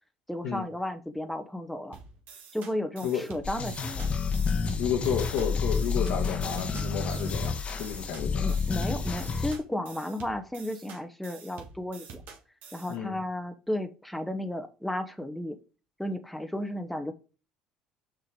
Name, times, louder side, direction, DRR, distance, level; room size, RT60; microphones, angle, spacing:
voice 1, 0.3-2.0 2.5-4.1 8.2-12.2 12.7-15.6 16.0-17.1, left 1 dB, ahead, 0.9 m, -34 dB
sound 1, 1.9-13.0, right 6 dB, 60° right, 1.6 m, -48 dB
sound 2, 3.4-9.6, left 5 dB, 40° left, 1.1 m, -29 dB
voice 2, 4.8-8.6 12.9-13.2, left 8 dB, 70° left, 1.3 m, -31 dB
6.2 x 3.6 x 4.7 m
hypercardioid pair, 65°, 3 cm